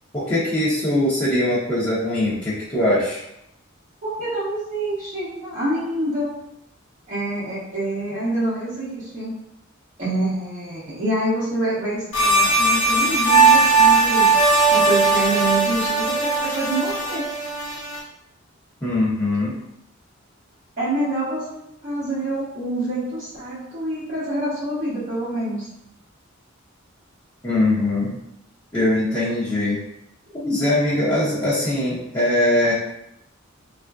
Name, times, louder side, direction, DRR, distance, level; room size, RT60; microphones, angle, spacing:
voice 1, 0.1-3.2 18.8-19.5 27.4-28.1 28.7-29.8 30.4-32.7, left 1 dB, 20° left, -12 dB, 0.8 m, -21 dB
voice 2, 4.0-6.3 7.1-9.3 10.0-14.3 14.7-17.2 20.8-25.7, right 1 dB, 40° right, -11 dB, 0.9 m, -26 dB
sound 1, 12.1-18.0, right 3 dB, 70° left, 0.7 m, -18 dB
3.5 x 2.5 x 2.3 m, 0.82 s
head